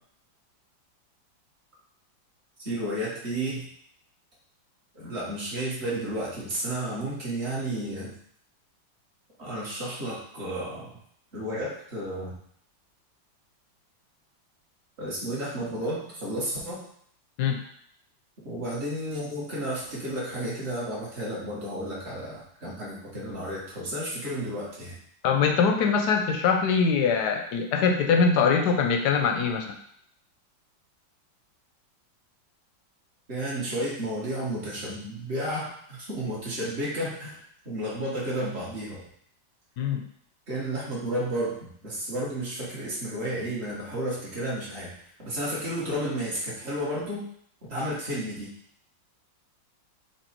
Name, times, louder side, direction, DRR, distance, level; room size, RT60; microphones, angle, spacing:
voice 1, 2.6-3.7 4.9-8.1 9.4-10.9 11.3-12.4 15.0-16.8 18.4-24.9 33.3-37.4 37.6-39.0 40.5-41.5 41.8-44.9 45.2-47.2 47.7-48.5, right 1 dB, 35° right, -7 dB, 1.8 m, -32 dB
voice 2, 25.2-29.7 39.8-40.0, left 5 dB, 70° left, 4 dB, 1.1 m, -23 dB
4.6 x 2.7 x 4.4 m, 0.65 s
omnidirectional pair, 2.1 m